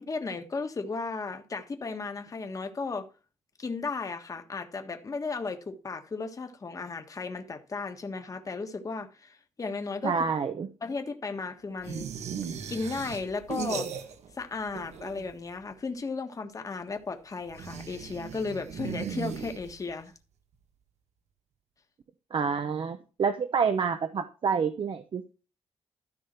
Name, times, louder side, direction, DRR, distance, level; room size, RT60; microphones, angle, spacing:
voice 1, 0.1-3.1 3.6-10.1 10.8-12.1 12.7-13.9 14.3-20.1, left 4 dB, 30° left, 1.4 m, -35 dB
voice 2, 10.0-10.7 22.3-25.3, right 6 dB, 50° right, 0.9 m, -28 dB
sound 1, 11.8-14.4 14.7-15.5 17.5-20.0, right 7 dB, 80° right, 1.7 m, -37 dB
13.5 x 5.5 x 4.5 m
wide cardioid pair, 140°, 11 cm